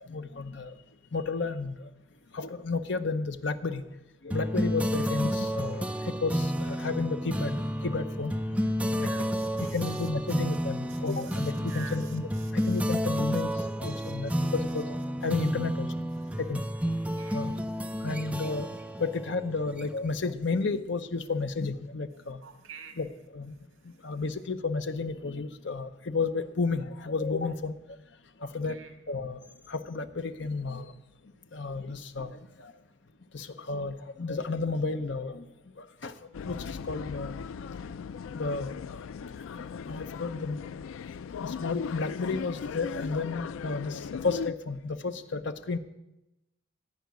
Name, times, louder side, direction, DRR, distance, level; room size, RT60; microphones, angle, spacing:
voice 1, 0.0-0.7 1.1-1.9 2.3-3.8 4.2-8.3 9.0-9.1 9.6-12.3 12.5-13.5 13.8-15.0 15.2-15.9 16.4-16.6 17.3-17.5 18.0-18.7 19.0-22.4 23.0-23.5 24.0-27.7 28.4-28.8 29.1-29.4 29.7-30.9 31.5-32.7 33.3-35.4 35.8-36.1 36.4-37.3 37.8-37.9 38.3-38.7 39.2-39.3 39.6-40.7 41.4-45.8, left 4 dB, 60° left, 10 dB, 0.7 m, -32 dB
sound 1, 4.3-20.2, equal, 5° right, 0.4 m, -31 dB
voice 2, 9.0-10.1 10.9-13.0 13.8-14.5 17.1-17.4 22.4-23.0 23.8-23.9 28.4-28.9, right 6 dB, 75° right, 6 dB, 1.7 m, -49 dB
sound 2, 36.3-44.5, left 6 dB, 80° left, 0.3 m, -38 dB
15.0 x 5.1 x 9.4 m, 0.94 s
head